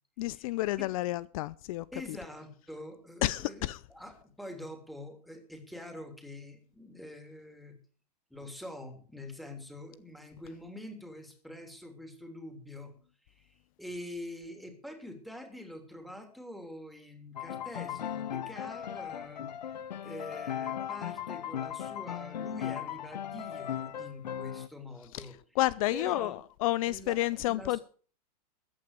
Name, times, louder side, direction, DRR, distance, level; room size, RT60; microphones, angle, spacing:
voice 1, 0.2-1.9 3.2-3.8 25.1-25.2 25.6-27.8, left 17 dB, 55° left, 0.5 m, -30 dB
voice 2, 1.9-7.8 8.3-12.9 13.3-19.5 20.0-25.3 25.9-26.4 26.9-27.8, left 1 dB, ahead, 3.1 m, -45 dB
Piano, 17.4-24.7, left 10 dB, 85° left, 1.0 m, -37 dB
14.0 x 8.8 x 6.7 m
hypercardioid pair, 125°, 21 cm